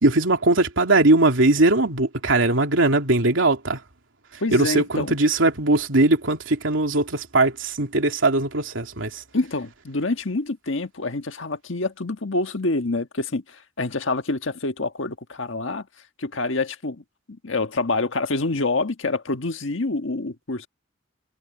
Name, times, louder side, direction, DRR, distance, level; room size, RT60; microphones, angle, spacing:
voice 1, 0.0-3.8 4.3-9.2, right 2 dB, 90° right, 2.9 m, -20 dB
voice 2, 4.4-5.2 9.3-15.9 16.2-20.7, left 3 dB, 80° left, 1.5 m, -27 dB
head